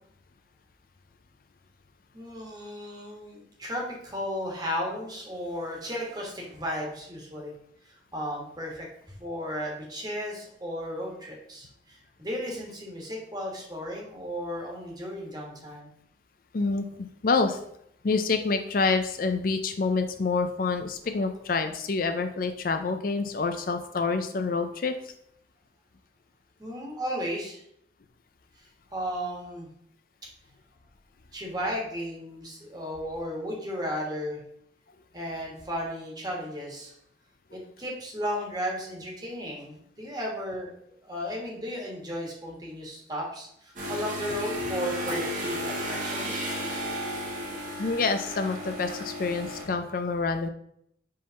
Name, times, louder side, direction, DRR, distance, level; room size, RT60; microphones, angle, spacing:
voice 1, 2.1-7.5 7.8-15.9 26.6-27.6 28.9-29.7 31.3-34.4 35.1-36.9 37.5-40.7 41.0-46.5, equal, 20° right, -1 dB, 1.5 m, -34 dB
voice 2, 16.5-17.6 18.0-25.1 47.8-50.5, left 4 dB, 50° left, 7 dB, 0.4 m, -27 dB
sound 1, 43.8-49.6, equal, 45° right, 1.4 m, -33 dB
5.3 x 3.5 x 5.6 m, 0.72 s
head